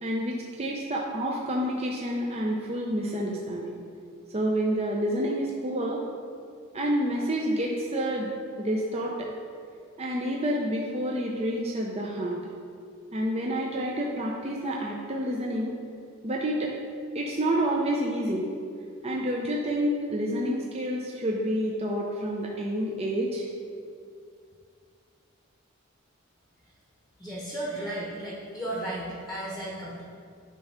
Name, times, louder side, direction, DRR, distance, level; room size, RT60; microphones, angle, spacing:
voice 1, 0.0-3.8 4.3-6.0 6.7-8.3 8.6-9.3 10.0-12.4 13.1-15.7 16.2-16.7 17.1-18.5 19.0-23.5, equal, 30° right, -2 dB, 0.6 m, -28 dB
voice 2, 27.2-30.0, right 1 dB, ahead, -5 dB, 1.0 m, -34 dB
9.3 x 3.4 x 5.6 m, 2.3 s
head